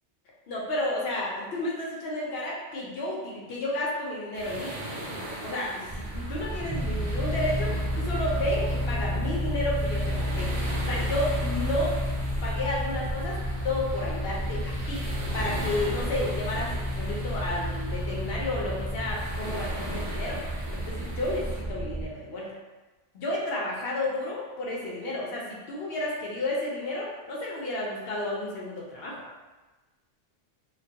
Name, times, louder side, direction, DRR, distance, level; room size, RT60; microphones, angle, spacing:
voice 1, 0.5-4.7 5.4-10.5 10.8-12.0 12.4-13.4 13.6-15.0 15.3-20.4 20.7-22.5 23.1-29.2, left 1 dB, 65° left, -4 dB, 0.7 m, -31 dB
sound 1, 4.3-21.6, right 1 dB, 65° right, 0.8 m, -40 dB
sound 2, 5.9-22.1, equal, 10° right, 0.5 m, -31 dB
2.3 x 2.2 x 2.6 m, 1.2 s
omnidirectional pair, 1.2 m